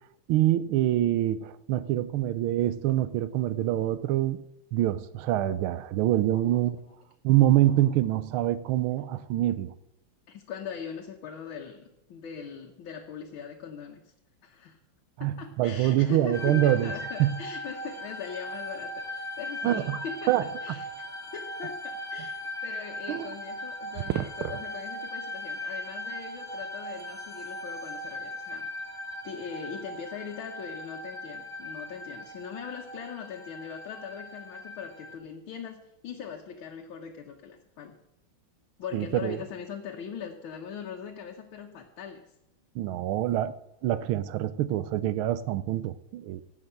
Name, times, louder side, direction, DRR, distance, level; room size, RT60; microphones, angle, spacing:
voice 1, 0.3-4.4 4.7-6.8 7.2-9.7 15.2-16.9 17.2-17.4 19.6-20.4 23.1-23.3 24.1-24.5 38.9-39.4 42.7-43.5 43.8-46.4, right 13 dB, 90° right, 1.5 m, -25 dB
voice 2, 10.3-14.0 14.4-14.8 15.2-20.9 21.3-28.7 29.2-38.0 38.8-42.2, left 7 dB, 75° left, 1.8 m, -41 dB
sound 1, 16.3-35.1, left 1 dB, ahead, 1.5 m, -39 dB
15.5 x 5.9 x 7.8 m
omnidirectional pair, 2.2 m